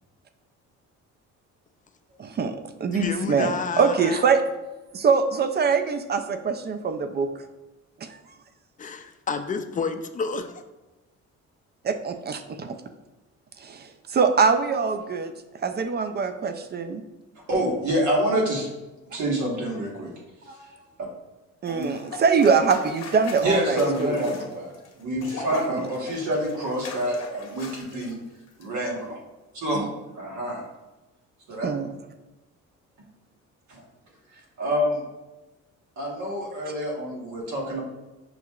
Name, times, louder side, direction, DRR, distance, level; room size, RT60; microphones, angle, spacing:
voice 1, 2.2-4.4 4.9-7.3 8.0-8.2 11.8-12.8 13.6-17.0 21.6-24.3 25.7-25.9 31.6-31.9, right 5 dB, 35° right, 9 dB, 0.4 m, -24 dB
voice 2, 2.9-4.2 8.8-10.6, left 5 dB, 25° left, 8 dB, 0.4 m, -30 dB
voice 3, 17.5-18.7 19.1-20.1 20.4-20.7 21.7-21.9 23.4-24.7 25.0-28.2 28.6-29.2 29.5-30.7 31.5-31.7 33.7-33.8 34.3-35.0 36.0-37.8, right 1 dB, 70° right, -2 dB, 1.3 m, -27 dB
sound 1, 21.6-28.1 28.5-28.7, left 3 dB, 60° left, 0.8 m, -40 dB
6.1 x 2.8 x 2.3 m, 1.1 s
cardioid pair, 90°, 30 cm